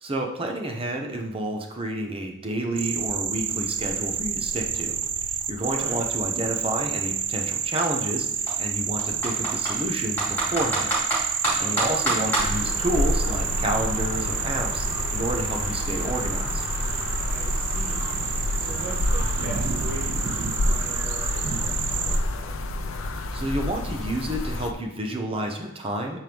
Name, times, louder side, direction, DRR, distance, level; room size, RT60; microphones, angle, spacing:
voice 1, 0.0-4.9 5.3-10.9 11.6-16.6 23.3-26.2, right 1 dB, 25° right, 2 dB, 0.8 m, -30 dB
sound 1, 2.8-22.2, right 7 dB, 40° right, 0.4 m, -29 dB
Computer keyboard, 4.2-4.3 4.6-6.5 7.3-7.5 7.8-7.9 8.5-9.8 10.2-12.5, right 1 dB, 10° left, 2.5 m, -27 dB
voice 2, 5.6-6.1 11.6-12.1 17.3-18.2 18.6-22.6, right 1 dB, 65° right, -4 dB, 1.6 m, -40 dB
sound 2, 12.4-24.7, left 1 dB, 65° left, 0.6 m, -29 dB
7.7 x 4.5 x 3.5 m, 0.89 s
head